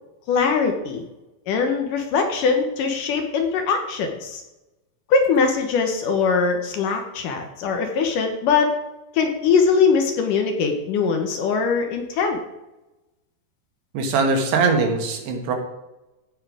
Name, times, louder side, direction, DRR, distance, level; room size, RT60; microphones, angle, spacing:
voice 1, 0.3-1.0 1.5-4.4 5.1-8.7 9.1-12.4, left 5 dB, 70° left, 4 dB, 2.2 m, -21 dB
voice 2, 13.9-15.6, right 4 dB, 80° right, 3 dB, 3.7 m, -21 dB
16.0 x 5.6 x 4.9 m, 0.99 s
omnidirectional pair, 4.6 m